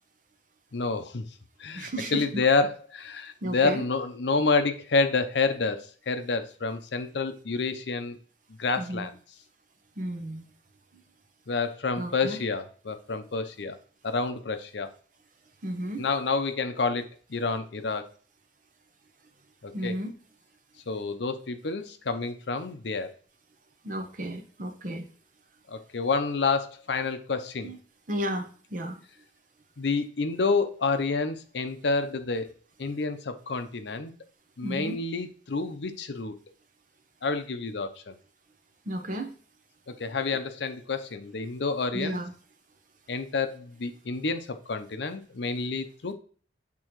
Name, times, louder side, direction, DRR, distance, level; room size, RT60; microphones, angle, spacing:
voice 1, 0.7-1.2 1.6-8.2 8.6-9.1 11.5-13.8 14.0-14.9 16.0-18.0 19.6-19.9 20.9-23.1 25.7-27.7 29.8-32.5 32.8-34.1 34.6-36.4 37.2-38.1 40.0-42.2 43.1-46.1, left 4 dB, 70° left, 9 dB, 0.6 m, -28 dB
voice 2, 1.7-2.2 3.4-3.8 8.8-9.1 10.0-10.4 12.0-12.4 15.6-16.0 19.7-20.1 23.8-25.1 27.6-27.8 28.1-29.0 34.6-35.0 38.9-39.3 41.9-42.3, right 1 dB, 45° right, 5 dB, 0.9 m, -33 dB
8.5 x 3.7 x 3.0 m, 0.43 s
head